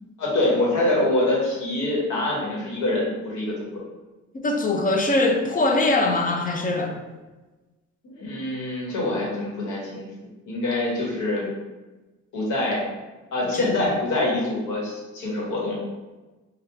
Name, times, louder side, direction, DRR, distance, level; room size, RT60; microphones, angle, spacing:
voice 1, 0.2-3.7 8.0-10.1 10.5-11.5 12.3-12.8 13.3-15.8, left 2 dB, 80° left, -4 dB, 1.2 m, -25 dB
voice 2, 4.3-7.0 13.5-13.7, left 2 dB, 30° left, 3 dB, 0.5 m, -22 dB
2.9 x 2.3 x 3.4 m, 1.2 s
cardioid pair, 90°, 30 cm